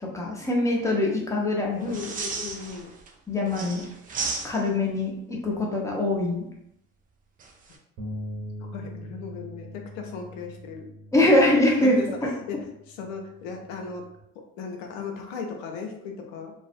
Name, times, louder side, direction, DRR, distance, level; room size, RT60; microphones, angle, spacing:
voice 1, 0.0-1.9 3.3-3.8 4.4-6.5 11.1-12.0, left 1 dB, 10° left, -2 dB, 0.7 m, -23 dB
voice 2, 1.8-2.9 8.6-10.9 11.8-12.1 12.5-12.6 12.9-14.0 14.6-16.5, left 5 dB, 70° left, 3 dB, 0.7 m, -36 dB
sound 1, 1.8-3.1 3.5-4.9 7.4-7.8, right 4 dB, 25° right, 0.3 m, -34 dB
sound 2, 8.0-14.2, equal, 60° right, 1.0 m, -42 dB
2.5 x 2.0 x 2.5 m, 0.78 s
hypercardioid pair, 65°, 40 cm